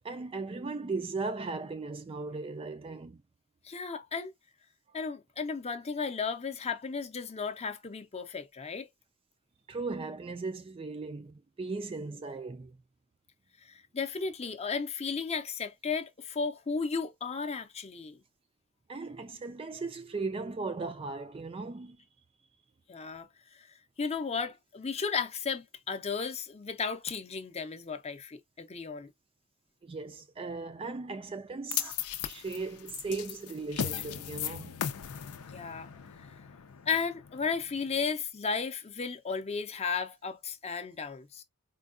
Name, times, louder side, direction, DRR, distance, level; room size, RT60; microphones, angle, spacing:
voice 1, 0.0-3.2 9.7-12.7 18.9-22.0 29.8-32.0 32.3-34.8, right 3 dB, 25° right, 0.3 m, -37 dB
voice 2, 3.6-4.3 4.9-8.9 13.6-18.2 22.9-23.3 23.6-23.7 24.0-29.1 35.5-35.9 36.2-36.3 36.9-41.4, left 5 dB, 30° left, 0.6 m, -34 dB
sound 1, 31.7-38.0, left 9 dB, 90° left, 0.5 m, -37 dB
4.5 x 2.2 x 2.5 m
head